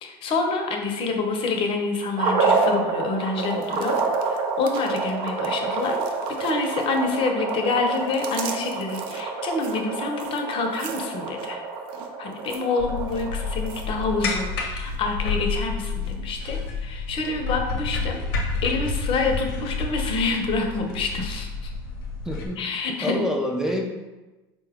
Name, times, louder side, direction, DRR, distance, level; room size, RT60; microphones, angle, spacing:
voice 1, 0.0-4.0 4.2-6.0 6.3-11.6 12.2-18.2 18.6-21.7 22.6-23.3, left 3 dB, 45° left, 4 dB, 0.7 m, -27 dB
sound 1, 2.2-14.4, right 4 dB, 50° right, 0.7 m, -28 dB
sound 2, 3.4-7.2 7.5-14.4 14.7-15.0 15.5-16.1 16.6-16.7, right 7 dB, 80° right, 0.4 m, -43 dB
sound 3, 12.8-22.5, left 4 dB, 80° left, 0.8 m, -30 dB
voice 2, 22.2-22.6 23.0-23.8, equal, 5° right, 1 dB, 0.5 m, -26 dB
4.2 x 2.2 x 3.5 m, 1.1 s
supercardioid pair, 100°, 12 cm